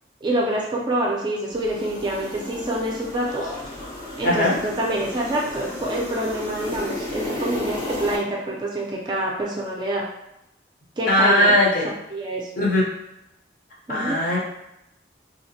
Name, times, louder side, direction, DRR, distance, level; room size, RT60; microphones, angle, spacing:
voice 1, 0.2-3.5 4.2-10.0 11.0-11.6 12.1-12.5 13.9-14.2, right 1 dB, 25° right, -3 dB, 0.4 m, -26 dB
sound 1, 1.5-8.2, left 2 dB, 75° left, 1.4 m, -33 dB
voice 2, 4.2-4.5 11.1-11.9 12.6-12.8 13.9-14.4, left 1 dB, 50° left, -4 dB, 0.7 m, -19 dB
2.8 x 2.1 x 2.7 m, 0.84 s
head